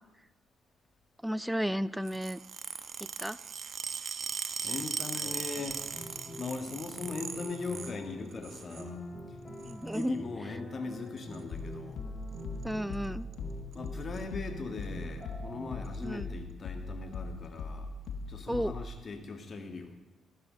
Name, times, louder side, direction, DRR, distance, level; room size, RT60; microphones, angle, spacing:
voice 1, 1.2-2.4 3.2-3.4 9.7-10.2 12.6-13.3 16.0-16.3 18.5-18.7, equal, 5° right, 18 dB, 0.4 m, -33 dB
sound 1, 2.0-8.0 8.3-8.9 9.6-10.1 11.2-11.4 12.4-12.6 12.9-13.1 13.3-13.4 13.7-14.2 14.8-14.9 15.8-16.0, right 6 dB, 50° right, 1.1 m, -39 dB
voice 2, 4.6-5.8 6.4-9.0 9.3-9.4 9.9-12.0 13.7-17.9 18.3-19.9, left 4 dB, 45° left, 5 dB, 1.9 m, -40 dB
sound 2, 5.2-15.8, equal, 20° left, 5.6 m, -46 dB
sound 3, 11.5-19.0, left 3 dB, 75° left, 1.3 m, -40 dB
13.0 x 12.5 x 5.3 m, 1.1 s
cardioid pair, 90°, 0 cm